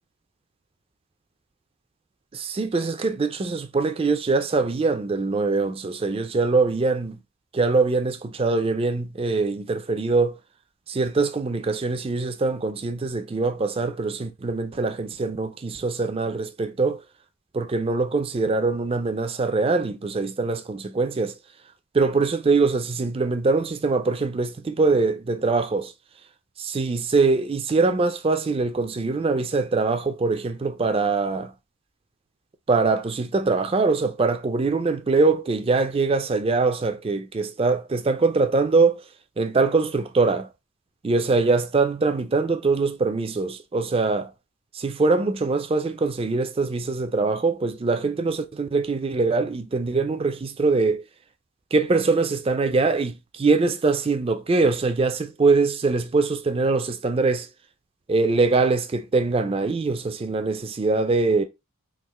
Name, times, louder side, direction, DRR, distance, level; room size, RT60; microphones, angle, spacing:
voice 1, 2.3-7.2 7.5-10.4 10.9-17.0 17.5-21.3 21.9-25.9 26.6-31.5 32.7-39.0 39.4-40.5 41.0-44.3 44.7-51.0 51.7-57.5 58.1-61.4, right 3 dB, 25° right, 0.3 m, -23 dB
3.6 x 2.4 x 3.0 m
head